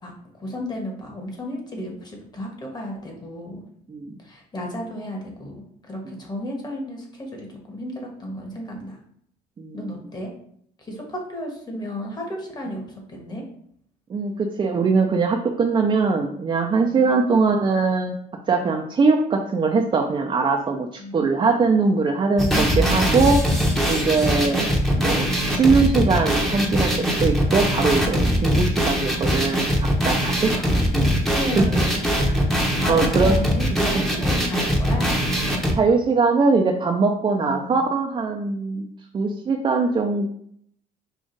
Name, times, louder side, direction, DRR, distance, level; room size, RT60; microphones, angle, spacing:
voice 1, 0.0-3.7 4.2-9.0 9.7-10.3 10.8-12.8 13.1-13.4 16.9-17.1 21.0-21.2 28.5-28.9 30.5-30.9 31.3-32.1 32.7-35.1 37.4-37.8, left 1 dB, 25° left, 1 dB, 1.4 m, -33 dB
voice 2, 14.1-18.2 18.5-23.4 23.9-24.7 25.0-30.5 30.9-31.2 31.6-31.8 32.3-32.4 32.9-33.4 33.7-34.0 35.8-38.9 39.1-40.3, right 4 dB, 30° right, 1 dB, 0.5 m, -21 dB
sound 1, 22.4-35.7, equal, ahead, 0.9 m, -21 dB
5.0 x 2.4 x 3.9 m, 0.66 s
cardioid pair, 110°, 17 cm